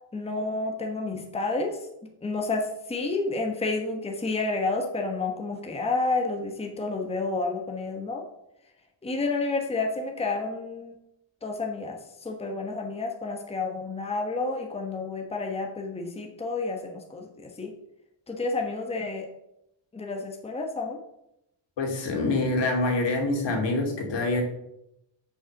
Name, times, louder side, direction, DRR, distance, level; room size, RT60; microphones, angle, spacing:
voice 1, 0.1-1.8 2.2-8.2 9.0-10.9 11.4-17.7 18.3-19.3 19.9-21.0, left 3 dB, 15° left, 2 dB, 1.1 m, -30 dB
voice 2, 21.8-24.4, left 2 dB, 65° left, 2 dB, 2.4 m, -26 dB
6.6 x 5.5 x 7.1 m, 0.84 s
cardioid pair, 125°, 46 cm